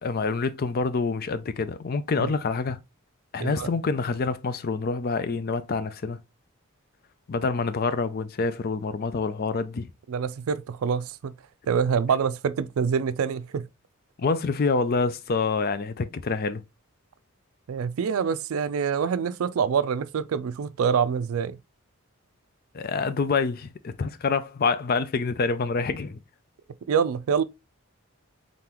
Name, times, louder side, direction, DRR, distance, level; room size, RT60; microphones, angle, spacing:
voice 1, 0.0-2.8 3.3-6.2 7.3-9.9 14.2-16.6 22.7-26.2, left 4 dB, 45° left, 0.4 m, -27 dB
voice 2, 10.1-11.3 11.7-13.7 17.7-21.6 26.9-27.4, right 6 dB, 75° right, 0.4 m, -26 dB
3.8 x 3.8 x 2.9 m
head